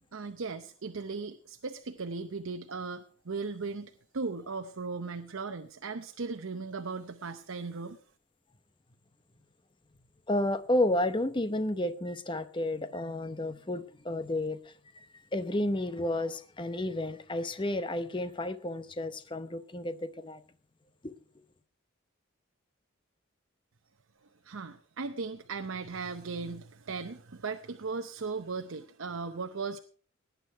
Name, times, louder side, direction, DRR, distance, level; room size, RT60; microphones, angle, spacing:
voice 1, 0.1-8.0 24.4-29.8, right 4 dB, 75° right, 0.7 m, -37 dB
voice 2, 10.3-15.1 15.3-20.4 21.0-21.1, left 1 dB, 25° left, 0.8 m, -31 dB
18.0 x 9.4 x 4.6 m
head